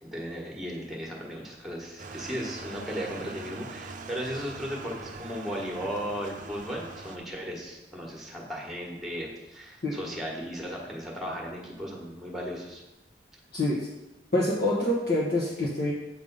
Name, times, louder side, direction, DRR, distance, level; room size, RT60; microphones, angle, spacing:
voice 1, 0.0-12.8, equal, ahead, -1 dB, 1.4 m, -36 dB
sound 1, 2.0-7.2, right 3 dB, 45° right, 0.5 m, -42 dB
voice 2, 13.5-13.9 14.3-15.9, left 1 dB, 65° left, -7 dB, 1.3 m, -26 dB
8.1 x 3.6 x 5.4 m, 0.98 s
head